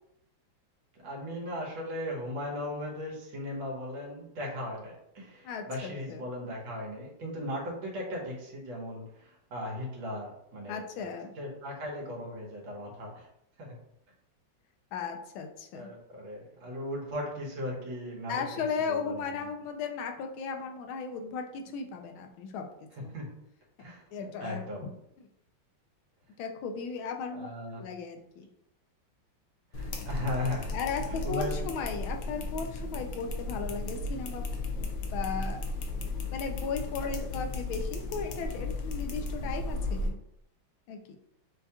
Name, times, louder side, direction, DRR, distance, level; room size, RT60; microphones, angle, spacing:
voice 1, 0.9-11.1 11.4-13.3 13.6-13.8 15.7-19.5 22.9-23.3 23.8-24.9 27.3-27.8 29.7-30.8 31.1-31.7, left 1 dB, 80° right, -2 dB, 2.0 m, -37 dB
voice 2, 5.4-6.3 10.7-11.3 14.9-15.9 18.3-22.7 23.0-23.1 24.1-24.6 26.4-27.5 27.8-28.5 30.7-34.5 35.1-35.6 36.0-40.2 40.9-41.0, left 5 dB, 90° left, 4 dB, 1.5 m, -36 dB
sound 1, 29.7-40.1, left 2 dB, 70° left, 1.3 m, -35 dB
6.8 x 2.3 x 2.8 m, 0.78 s
omnidirectional pair, 2.1 m